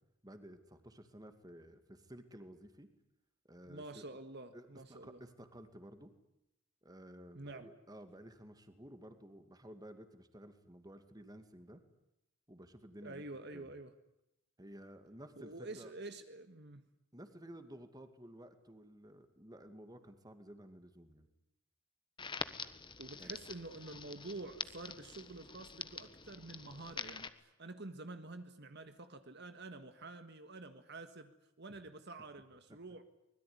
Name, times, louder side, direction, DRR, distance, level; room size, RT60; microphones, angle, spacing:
voice 1, 0.2-2.9 3.5-4.0 4.5-6.1 6.8-11.8 12.5-13.2 13.5-13.7 14.6-15.9 17.1-21.3 23.2-23.4, right 1 dB, 20° right, 8 dB, 2.4 m, -54 dB
voice 2, 3.7-5.2 7.3-7.7 13.0-13.9 15.4-16.9 23.0-33.0, right 2 dB, 55° right, 9 dB, 1.7 m, -48 dB
Crackle, 22.2-27.3, left 5 dB, 25° left, 1.2 m, -46 dB
24.5 x 21.0 x 9.8 m, 0.84 s
head